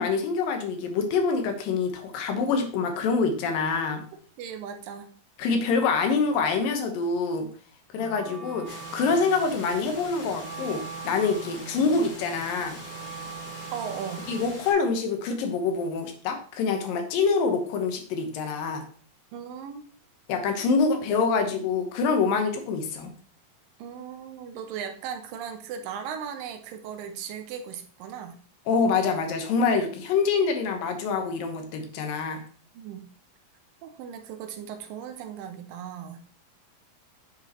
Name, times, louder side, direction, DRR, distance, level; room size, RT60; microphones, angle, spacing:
voice 1, 0.0-4.0 5.4-7.5 7.9-12.8 14.3-18.8 20.3-23.1 28.7-32.4, left 4 dB, 85° left, 5 dB, 2.8 m, -26 dB
voice 2, 4.4-5.1 13.7-14.2 19.3-19.8 20.6-21.1 21.4-21.5 23.8-28.3 32.7-33.1 33.8-36.2, right 8 dB, 80° right, 7 dB, 2.5 m, -37 dB
Wind instrument woodwind instrument, 7.9-14.6, right 6 dB, 65° left, 4.4 m, -42 dB
Water, 8.6-14.7, left 1 dB, 40° left, 2.6 m, -43 dB
9.2 x 5.0 x 2.9 m, 0.43 s
omnidirectional pair, 3.9 m